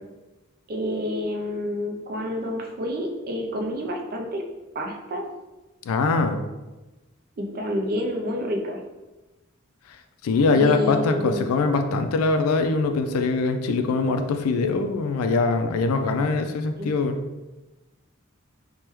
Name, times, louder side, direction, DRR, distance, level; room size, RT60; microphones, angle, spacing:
voice 1, 0.7-4.4 4.7-5.2 7.4-8.8 10.5-11.5 16.8-16.9, equal, 45° right, 2 dB, 0.4 m, -29 dB
voice 2, 5.9-6.4 10.2-17.2, left 3 dB, 90° left, 7 dB, 0.3 m, -22 dB
3.3 x 2.2 x 3.0 m, 1.1 s
head